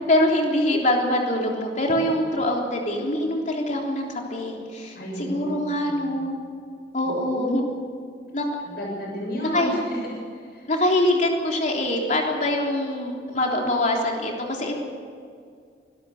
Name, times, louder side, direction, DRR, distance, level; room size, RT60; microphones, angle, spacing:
voice 1, 0.1-6.4 6.9-7.6 8.3-8.4 9.4-9.8 10.7-14.8, left 1 dB, 40° left, 0 dB, 3.5 m, -24 dB
voice 2, 5.0-5.5 5.8-6.1 7.0-7.7 8.6-10.7, equal, 60° left, -2 dB, 7.3 m, -32 dB
25.5 x 12.5 x 8.2 m, 2.2 s
head